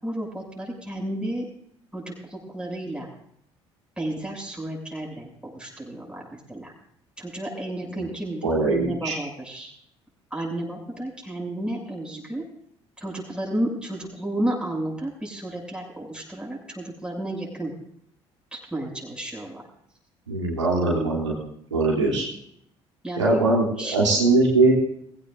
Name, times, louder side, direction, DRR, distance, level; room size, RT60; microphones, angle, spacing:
voice 1, 0.0-1.4 1.9-3.1 4.0-6.7 7.2-9.7 10.3-12.4 13.0-17.7 18.5-19.6 20.7-21.2 22.0-22.3 23.0-24.4, right 1 dB, 5° right, -1 dB, 6.9 m, -32 dB
voice 2, 8.4-9.2 20.3-21.3 21.7-22.3 23.2-24.7, right 3 dB, 90° right, -4 dB, 3.1 m, -21 dB
21.5 x 16.0 x 2.6 m, 0.71 s
figure-of-eight pair, 55°, 15 cm